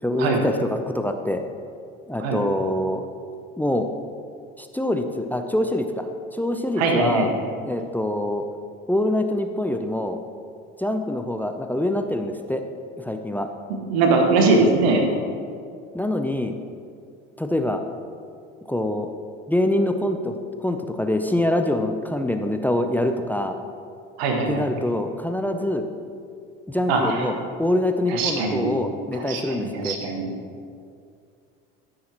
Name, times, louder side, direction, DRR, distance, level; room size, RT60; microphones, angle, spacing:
voice 1, 0.0-1.4 2.1-3.0 3.6-3.9 4.6-6.1 6.3-7.3 7.6-8.4 8.9-10.2 10.8-12.6 13.0-13.5 15.9-16.6 17.4-17.8 18.7-19.1 19.5-23.6 24.5-25.9 26.7-30.0, left 1 dB, 5° left, 6 dB, 0.5 m, -25 dB
voice 2, 6.8-7.4 13.9-15.0 24.2-24.6 26.9-27.2 28.1-28.7 29.1-30.3, right 3 dB, 80° right, 2 dB, 1.5 m, -21 dB
14.0 x 6.4 x 3.0 m, 2.3 s
hypercardioid pair, 70°, 31 cm